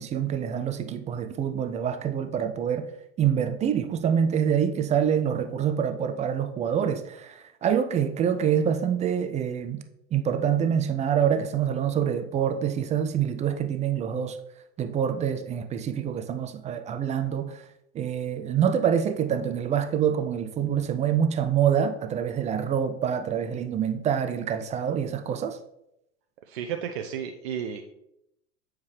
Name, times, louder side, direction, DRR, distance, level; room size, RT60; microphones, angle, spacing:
voice 1, 0.0-2.9 3.2-9.8 10.1-14.4 14.8-17.6 17.9-25.6, right 8 dB, 20° right, 0.4 m, -26 dB
voice 2, 26.5-27.8, right 8 dB, 65° right, 0.6 m, -32 dB
7.3 x 4.7 x 3.2 m
hypercardioid pair, 85°, 35 cm